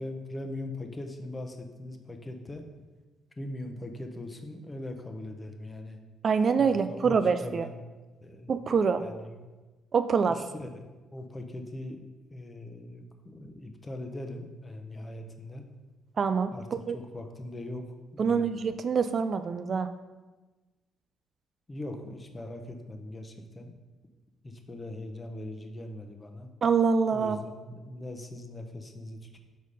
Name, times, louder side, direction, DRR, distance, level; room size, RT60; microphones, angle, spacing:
voice 1, 0.0-2.7 3.4-6.0 6.6-7.8 8.2-8.6 9.0-9.5 10.3-10.8 11.1-12.0 12.3-15.6 16.5-16.7 16.9-17.9 18.1-18.5 21.7-23.7 24.4-26.5 27.1-29.4, left 1 dB, 20° left, 4 dB, 0.8 m, -40 dB
voice 2, 6.2-7.7 8.5-9.0 9.9-10.4 16.2-16.5 16.9-17.0 18.2-19.9 26.6-27.4, right 5 dB, 45° right, 10 dB, 0.3 m, -25 dB
4.9 x 4.0 x 5.3 m, 1.2 s
cardioid pair, 85°, 0 cm